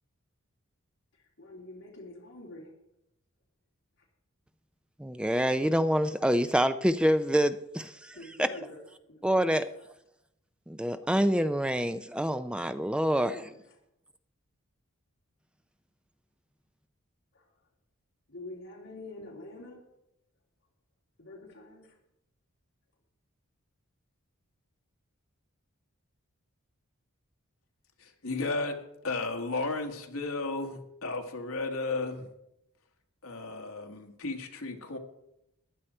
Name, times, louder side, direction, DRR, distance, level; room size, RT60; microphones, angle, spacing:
voice 1, 1.1-2.7 8.1-8.8 9.1-9.9 13.1-13.7 17.3-17.5 18.3-19.8 21.2-22.0, left 2 dB, 60° left, -4 dB, 3.3 m, -46 dB
voice 2, 5.0-8.5 9.2-9.6 10.7-13.4, equal, 5° right, 11 dB, 0.4 m, -26 dB
voice 3, 28.0-28.8 29.0-32.3 33.2-35.0, left 3 dB, 75° left, 3 dB, 1.7 m, -34 dB
15.0 x 10.0 x 4.4 m, 0.83 s
head